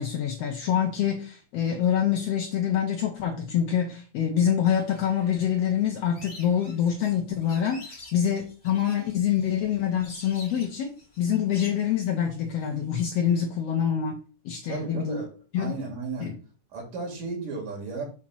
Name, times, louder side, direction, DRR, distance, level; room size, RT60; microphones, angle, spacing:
voice 1, 0.0-14.2 14.4-15.2 15.5-15.7 16.2-16.4, left 9 dB, 70° left, 3 dB, 1.6 m, -26 dB
sound 1, 4.7-13.4, left 2 dB, 30° left, 0.9 m, -49 dB
voice 2, 14.7-15.3 15.6-16.3 16.7-18.0, right 3 dB, 80° right, 1 dB, 3.8 m, -34 dB
7.1 x 2.9 x 6.0 m, 0.37 s
omnidirectional pair, 3.7 m